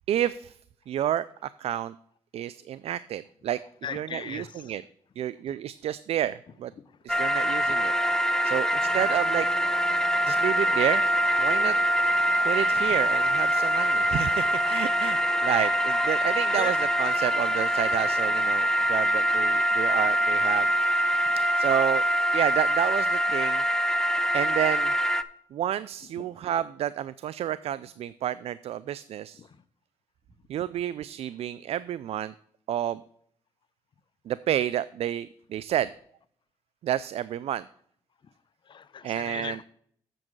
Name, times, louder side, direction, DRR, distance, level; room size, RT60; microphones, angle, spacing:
voice 1, 0.1-0.6 0.9-1.9 2.3-3.6 3.9-4.8 5.2-6.7 7.0-7.9 8.4-9.5 10.2-11.0 11.4-11.8 12.4-20.7 21.6-22.0 22.3-23.6 24.3-24.9 25.5-29.4 30.5-32.3 32.7-33.0 34.3-35.9 36.8-37.6 39.0-39.6, right 11 dB, 65° right, 0.4 m, -30 dB
voice 2, 3.8-4.7 6.8-6.9 15.6-15.7 16.5-16.7 21.3-21.4 26.2-26.3 29.4-29.5 38.7-39.6, left 7 dB, 45° left, 0.7 m, -38 dB
sound 1, 7.1-25.2, equal, 5° left, 0.6 m, -24 dB
7.7 x 7.2 x 4.6 m
cardioid pair, 80°, 11 cm